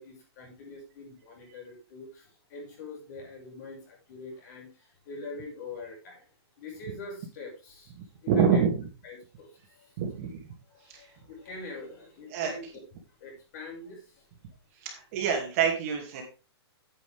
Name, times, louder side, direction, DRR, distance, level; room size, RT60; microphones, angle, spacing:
voice 1, 0.0-6.2 6.6-7.9 8.2-8.6 9.0-10.0 10.6-12.8 13.1-14.3, left 3 dB, 40° left, 0 dB, 5.7 m, -44 dB
voice 2, 8.3-8.7 10.0-10.3 12.3-12.5 14.8-16.2, right 7 dB, 30° right, 2 dB, 2.4 m, -25 dB
9.4 x 9.3 x 3.5 m, 0.34 s
hypercardioid pair, 165°, 14 cm